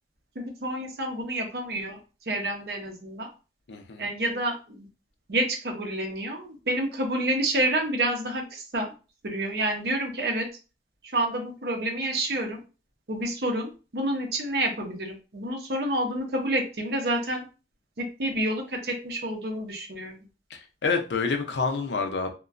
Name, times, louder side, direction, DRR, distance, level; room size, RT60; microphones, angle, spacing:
voice 1, 0.3-2.0 2.3-3.3 4.0-4.9 5.3-8.9 9.2-10.5 11.0-12.6 13.1-17.5 18.0-20.2, right 1 dB, 60° right, 0.7 m, -29 dB
voice 2, 3.7-4.0 20.5-22.3, left 4 dB, 80° left, 0.5 m, -28 dB
2.9 x 2.2 x 2.4 m
head